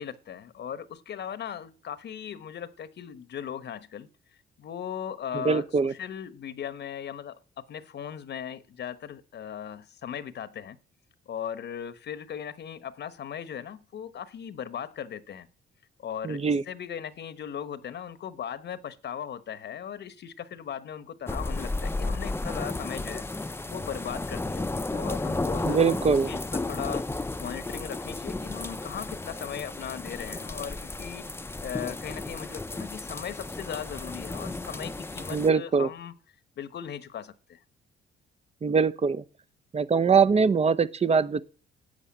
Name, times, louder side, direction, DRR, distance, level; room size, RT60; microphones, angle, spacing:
voice 1, 0.0-4.1 4.6-10.8 11.3-15.5 16.0-25.9 26.3-31.2 31.6-36.1 36.6-37.6, left 8 dB, 60° left, 1.1 m, -38 dB
voice 2, 5.3-5.9 16.2-16.6 25.6-26.3 35.3-35.9 38.6-39.2 39.7-41.4, right 5 dB, 30° right, 0.7 m, -22 dB
sound 1, 21.3-35.5, left 2 dB, 10° left, 0.7 m, -33 dB
11.5 x 8.0 x 8.7 m
cardioid pair, 90°, 20 cm